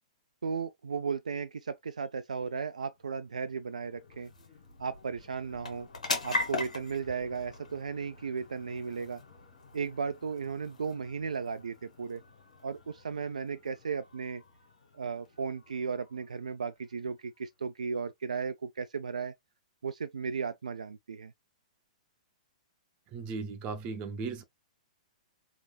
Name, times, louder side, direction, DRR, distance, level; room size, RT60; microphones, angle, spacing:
voice 1, 0.4-4.3 4.8-5.9 6.2-9.2 9.7-12.2 12.6-14.4 14.9-19.3 19.8-21.3, right 5 dB, 80° right, 0.3 m, -35 dB
sound 1, 2.7-17.5, left 3 dB, 80° left, 1.4 m, -42 dB
voice 2, 23.1-24.4, right 4 dB, 30° right, 0.8 m, -37 dB
3.3 x 2.7 x 2.2 m
figure-of-eight pair, 115°, 4 cm